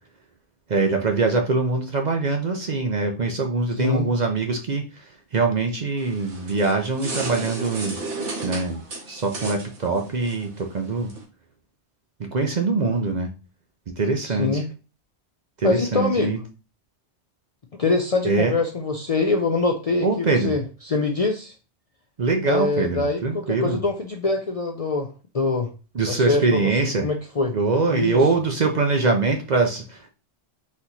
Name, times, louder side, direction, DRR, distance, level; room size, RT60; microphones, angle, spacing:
voice 1, 0.7-8.0 8.4-8.8 9.1-11.1 12.2-13.3 13.9-14.6 15.6-16.4 18.2-18.5 20.0-20.5 22.2-23.8 25.9-27.0 27.5-30.1, right 3 dB, 45° right, 4 dB, 0.6 m, -23 dB
voice 2, 3.8-4.1 14.2-14.7 15.6-16.3 17.8-21.5 22.4-25.7 26.1-26.7 27.0-27.6 27.9-28.2, left 3 dB, 45° left, 2 dB, 0.5 m, -24 dB
sound 1, 6.0-11.2, right 3 dB, 80° right, 1.6 m, -34 dB
4.2 x 2.9 x 4.0 m, 0.33 s
omnidirectional pair, 1.2 m